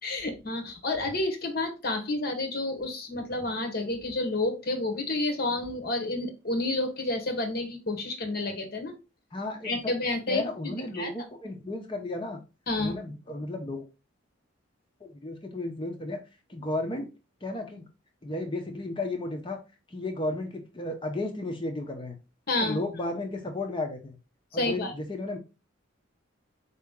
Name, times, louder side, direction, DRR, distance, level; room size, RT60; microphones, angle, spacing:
voice 1, 0.0-8.9 9.6-10.4 10.9-11.1 12.7-12.9 22.5-22.8 24.6-24.9, left 2 dB, 50° left, 6 dB, 1.0 m, -30 dB
voice 2, 9.3-9.9 10.3-12.4 12.8-13.9 15.0-16.2 16.5-17.1 17.4-17.8 18.2-19.6 19.9-22.2 22.6-24.2 24.5-25.4, left 2 dB, 25° left, 4 dB, 0.6 m, -33 dB
4.5 x 2.9 x 3.6 m, 0.28 s
head